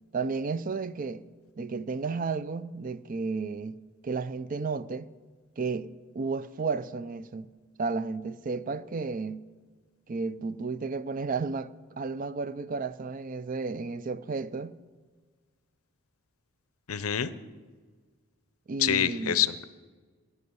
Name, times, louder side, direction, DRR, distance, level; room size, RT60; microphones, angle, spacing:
voice 1, 0.1-1.2 1.6-3.8 4.0-5.1 5.6-5.9 6.1-7.5 7.8-9.4 10.1-11.7 12.0-14.7 18.7-19.5, right 4 dB, 40° right, 0.4 m, -32 dB
voice 2, 16.9-17.3 18.8-19.7, left 10 dB, 80° left, 0.6 m, -26 dB
13.5 x 6.8 x 9.5 m
head